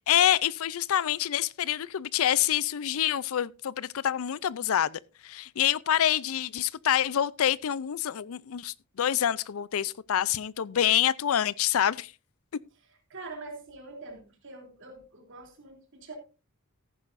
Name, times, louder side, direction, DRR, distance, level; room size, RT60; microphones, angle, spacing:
voice 1, 0.1-12.1, left 10 dB, 70° left, 0.4 m, -26 dB
voice 2, 13.1-16.2, right 3 dB, 60° right, 3.1 m, -44 dB
14.5 x 11.0 x 2.6 m
head